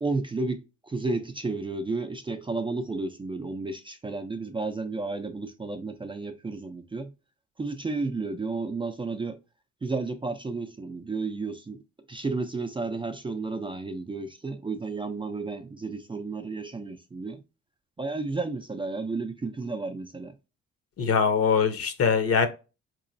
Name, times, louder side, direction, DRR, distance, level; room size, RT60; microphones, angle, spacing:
voice 1, 0.0-7.1 7.6-9.4 9.8-11.8 12.1-17.4 18.0-20.3, right 3 dB, 15° right, 0.4 m, -32 dB
voice 2, 21.0-22.5, left 6 dB, 50° left, 0.8 m, -22 dB
3.8 x 3.0 x 2.6 m
cardioid pair, 90°, 30 cm